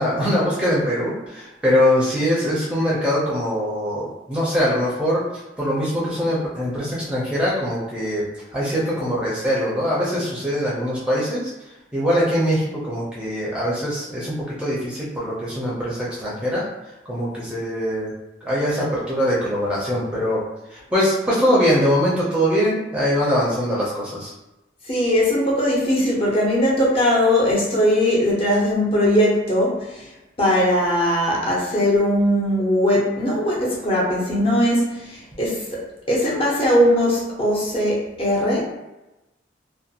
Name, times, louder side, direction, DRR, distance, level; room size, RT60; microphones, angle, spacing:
voice 1, 0.0-5.2 5.6-8.2 8.5-11.5 11.9-16.6 17.1-18.1 18.4-20.4 20.7-24.3, equal, 5° right, -7 dB, 0.5 m, -22 dB
voice 2, 24.9-30.1 30.4-38.6, equal, 30° left, -5 dB, 0.7 m, -20 dB
2.4 x 2.2 x 2.8 m, 0.99 s
head